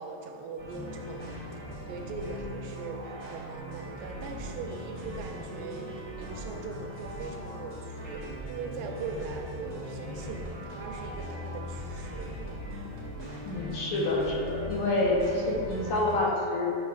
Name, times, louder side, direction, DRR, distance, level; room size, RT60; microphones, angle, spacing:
voice 1, 0.0-12.3, right 4 dB, 80° right, 2 dB, 2.2 m, -41 dB
sound 1, 0.6-16.2, equal, 45° right, 0.8 m, -39 dB
voice 2, 13.5-16.8, left 2 dB, 75° left, -2 dB, 2.4 m, -27 dB
8.3 x 6.2 x 2.4 m, 2.6 s
omnidirectional pair, 3.9 m